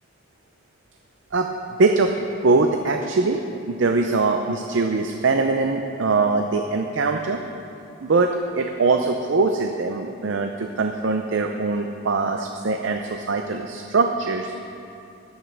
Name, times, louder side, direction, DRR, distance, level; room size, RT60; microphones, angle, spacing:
voice 1, 1.8-3.4 3.7-7.4 8.0-8.3 8.6-14.7, right 3 dB, 75° right, 5 dB, 0.5 m, -22 dB
9.2 x 8.0 x 6.3 m, 2.6 s
head